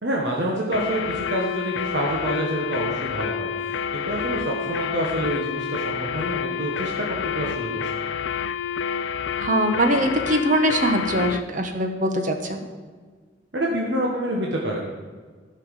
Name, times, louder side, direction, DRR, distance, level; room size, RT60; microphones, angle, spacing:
voice 1, 0.0-3.5 3.9-7.1 7.4-8.1 13.5-14.8, right 1 dB, 65° right, -2 dB, 1.3 m, -27 dB
sound 1, 0.7-11.5, left 7 dB, 80° left, 0.4 m, -29 dB
voice 2, 9.4-12.6, right 1 dB, 45° right, 5 dB, 1.1 m, -22 dB
11.5 x 5.8 x 6.5 m, 1.5 s
head